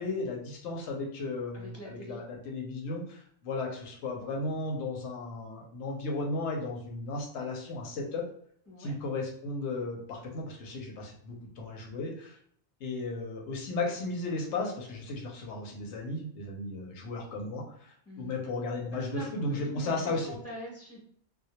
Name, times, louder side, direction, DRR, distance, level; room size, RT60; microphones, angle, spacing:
voice 1, 0.0-8.2 8.8-12.4 12.8-20.3, left 2 dB, 85° left, 0 dB, 0.9 m, -35 dB
voice 2, 1.5-2.2 8.7-9.0 18.1-18.4 18.9-21.0, right 1 dB, 20° left, -3 dB, 0.5 m, -44 dB
2.2 x 2.0 x 2.8 m, 0.63 s
omnidirectional pair, 1.2 m